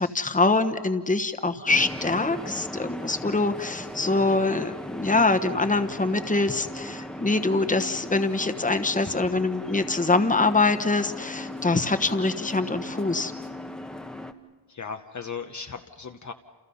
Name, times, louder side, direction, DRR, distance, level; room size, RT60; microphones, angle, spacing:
voice 1, 0.0-13.3, left 3 dB, 20° left, 9 dB, 1.2 m, -24 dB
sound 1, 1.7-14.3, left 1 dB, ahead, 1.1 m, -38 dB
voice 2, 14.7-16.3, left 6 dB, 40° left, 5 dB, 0.9 m, -37 dB
29.5 x 28.5 x 5.6 m, 1.4 s
wide cardioid pair, 125°, 42 cm